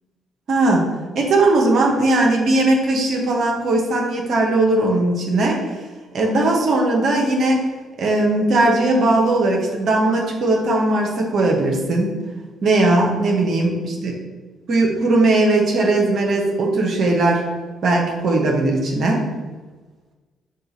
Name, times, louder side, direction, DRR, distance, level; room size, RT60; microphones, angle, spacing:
voice 1, 0.5-0.8 1.1-5.8 6.1-7.6 8.0-12.1 12.6-14.1 14.7-17.4 17.8-19.2, right 2 dB, 60° right, 0 dB, 0.9 m, -18 dB
5.3 x 2.4 x 4.0 m, 1.3 s
hypercardioid pair, 45°, 0 cm